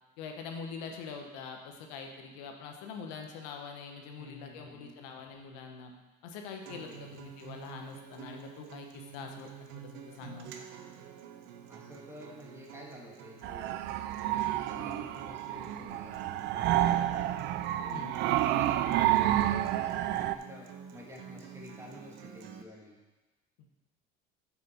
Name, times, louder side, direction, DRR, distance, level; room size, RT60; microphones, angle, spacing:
voice 1, 0.2-5.9 6.2-10.7 14.4-14.7 16.8-17.2 17.9-18.2 23.6-23.7, left 5 dB, 90° left, 3 dB, 1.2 m, -44 dB
voice 2, 4.2-5.0 6.7-7.1 11.7-13.9 14.1-16.2 16.5-17.3 17.8-23.0, left 1 dB, 10° right, -2 dB, 1.9 m, -49 dB
Acoustic guitar, 6.6-22.6, right 8 dB, 75° right, 0.8 m, -49 dB
sound 1, 13.4-20.3, right 13 dB, 55° right, 0.4 m, -29 dB
7.9 x 6.2 x 4.4 m, 1.2 s
cardioid pair, 125°, 21 cm